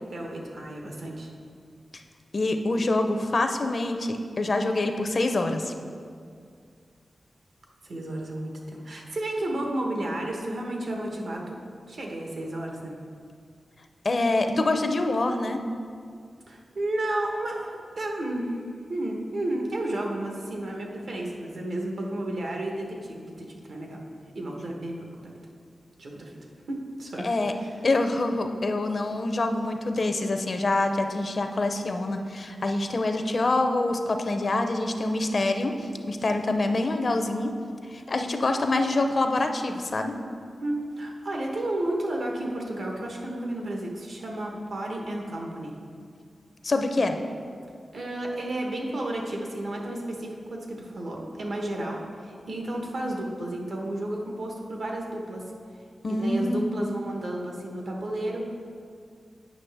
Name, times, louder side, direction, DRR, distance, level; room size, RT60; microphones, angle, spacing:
voice 1, 0.1-1.3 7.8-11.6 11.9-12.9 16.5-18.6 18.9-24.0 24.3-25.3 26.0-26.4 26.7-27.3 27.6-27.8 40.6-45.7 47.9-55.4 56.1-58.4, right 1 dB, 75° right, 0 dB, 1.0 m, -32 dB
voice 2, 2.3-5.7 14.0-15.6 27.2-27.5 27.8-37.5 37.9-40.1 46.6-47.2 56.0-56.6, left 2 dB, 50° left, 6 dB, 0.5 m, -26 dB
8.5 x 5.7 x 3.4 m, 2.2 s
wide cardioid pair, 100°, 0 cm